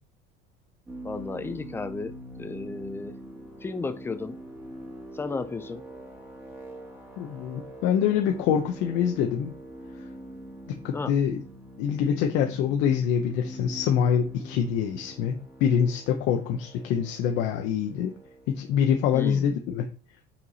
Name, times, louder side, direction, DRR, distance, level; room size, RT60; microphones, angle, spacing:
sound 1, 0.9-19.6, right 1 dB, 10° right, 1.7 m, -44 dB
voice 1, 1.0-3.2 3.6-4.4 5.1-5.8 10.9-11.1 19.1-19.6, left 4 dB, 10° left, 0.5 m, -34 dB
voice 2, 7.2-9.5 10.8-11.4 11.8-18.1 18.5-19.9, left 8 dB, 65° left, 0.8 m, -25 dB
5.8 x 4.6 x 4.1 m
cardioid pair, 145°, 21 cm